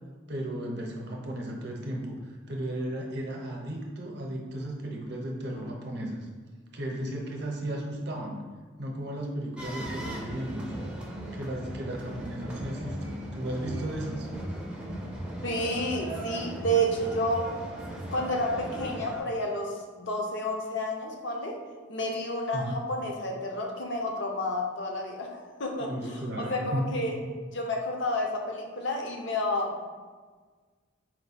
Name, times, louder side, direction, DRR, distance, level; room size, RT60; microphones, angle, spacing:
voice 1, 0.3-2.2 2.5-6.3 6.7-8.4 8.8-10.7 11.3-14.3 14.5-14.6 22.5-22.8 25.8-27.3, right 1 dB, 55° right, 0 dB, 0.7 m, -34 dB
sound 1, 9.6-19.2, right 1 dB, 5° right, 0.4 m, -37 dB
voice 2, 15.4-17.5 18.1-21.5 21.9-26.2 26.5-27.1 27.5-29.8, equal, 60° left, 0 dB, 0.6 m, -30 dB
4.4 x 2.2 x 4.0 m, 1.5 s
head